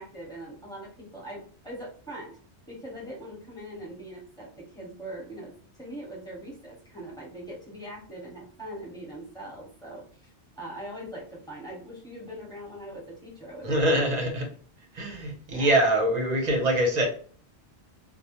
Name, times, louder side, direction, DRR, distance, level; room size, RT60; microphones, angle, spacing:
voice 1, 0.0-2.4 2.7-5.5 5.8-10.0 10.6-14.0 15.5-15.8, right 1 dB, 5° left, -5 dB, 0.9 m, -41 dB
voice 2, 13.6-14.5 14.9-17.1, right 1 dB, 45° right, 1 dB, 0.7 m, -24 dB
2.1 x 2.1 x 2.9 m, 0.42 s
omnidirectional pair, 1.2 m